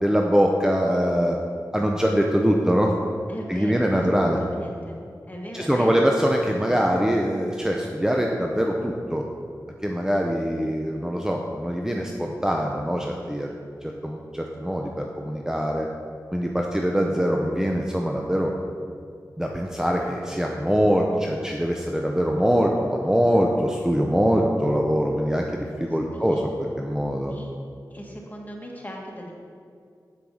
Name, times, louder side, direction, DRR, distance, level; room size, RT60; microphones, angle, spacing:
voice 1, 0.0-1.4 1.7-2.9 3.5-4.4 5.5-9.3 9.8-13.5 13.8-15.9 16.3-18.5 19.4-26.5 26.8-27.3, equal, 10° right, 0 dB, 0.7 m, -23 dB
voice 2, 3.3-5.0 5.3-6.0 26.1-26.5 27.3-27.5 27.9-29.3, equal, 20° left, -1 dB, 1.8 m, -38 dB
7.2 x 6.7 x 4.8 m, 2.3 s
cardioid pair, 40°, 7 cm